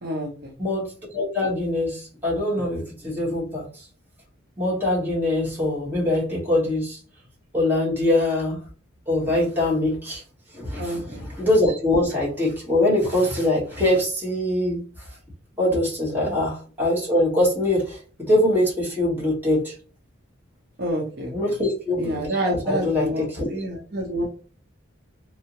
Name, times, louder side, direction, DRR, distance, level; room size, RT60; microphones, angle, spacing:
voice 1, 0.0-0.5 10.8-11.3 16.2-16.4 20.8-21.3 22.0-24.3, right 1 dB, 50° right, -2 dB, 0.8 m, -28 dB
voice 2, 0.6-3.8 4.6-7.0 7.5-8.6 9.1-10.2 10.5-14.9 15.6-19.7 21.3-22.2 22.5-23.5, left 1 dB, 10° right, -6 dB, 1.2 m, -23 dB
3.3 x 2.1 x 2.9 m, 0.39 s
head